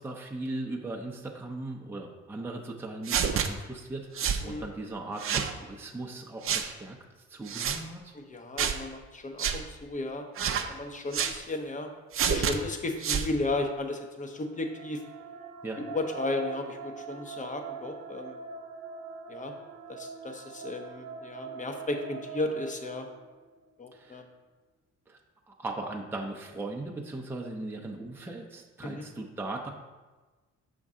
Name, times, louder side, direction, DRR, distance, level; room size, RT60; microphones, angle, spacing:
voice 1, 0.0-7.0 7.3-8.1 15.6-15.8 23.9-24.3 25.1-25.2 25.5-29.7, right 2 dB, 5° right, 1 dB, 0.7 m, -38 dB
sound 1, 3.1-3.5 4.2-4.4 5.2-5.5 6.4-6.7 7.5-7.8 8.6-8.8 9.4-9.6 10.4-10.7 11.1-11.4 12.1-12.6 13.0-13.3, right 7 dB, 45° right, 0.6 m, -28 dB
voice 2, 8.1-10.3 10.7-11.9 12.3-15.0 15.8-18.4 19.3-19.5 19.9-23.1 23.8-24.2 28.8-29.0, left 2 dB, 25° left, 5 dB, 0.8 m, -34 dB
sound 2, 14.4-23.6, right 6 dB, 65° right, 1.0 m, -43 dB
5.8 x 5.4 x 3.7 m, 1.3 s
cardioid pair, 90°, 30 cm